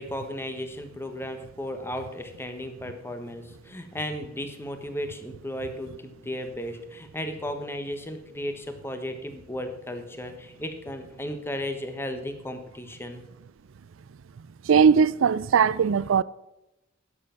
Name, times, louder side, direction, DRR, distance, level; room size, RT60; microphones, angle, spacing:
voice 1, 0.0-13.2, left 1 dB, 10° left, 1.2 m, -35 dB
voice 2, 14.7-16.2, right 6 dB, 70° right, 0.4 m, -19 dB
11.0 x 7.7 x 5.8 m
head